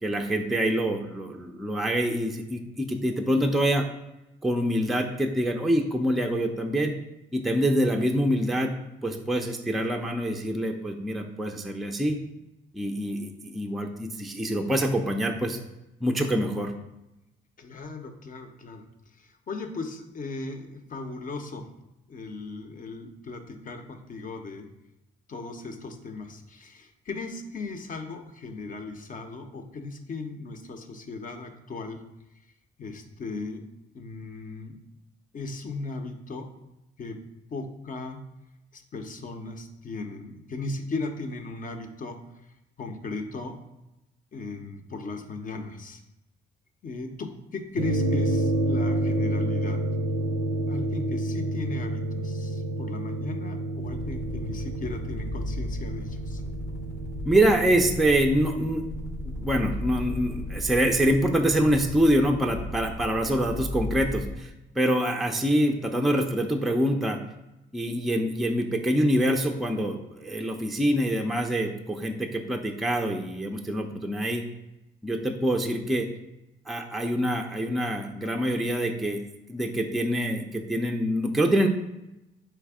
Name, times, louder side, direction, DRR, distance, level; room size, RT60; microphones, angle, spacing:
voice 1, 0.0-3.9 4.4-6.9 7.3-8.7 9.0-12.2 12.7-15.6 16.0-16.7 57.3-58.8 59.4-67.2 67.7-74.4 75.0-76.1 76.7-79.2 79.5-81.7, equal, ahead, 3 dB, 0.4 m, -25 dB
voice 2, 17.6-18.8 19.5-21.6 22.1-24.7 25.3-32.0 32.8-33.6 33.9-34.8 35.3-36.5 37.0-37.2 37.5-38.2 38.7-42.2 42.8-43.6 44.3-46.0 46.8-49.8 50.7-56.4, left 3 dB, 45° left, 5 dB, 0.6 m, -37 dB
sound 1, 47.8-62.3, right 1 dB, 65° right, 0.5 m, -30 dB
sound 2, 53.7-64.4, left 2 dB, 80° left, 0.8 m, -36 dB
3.4 x 3.2 x 4.8 m, 0.94 s
cardioid pair, 90°, 20 cm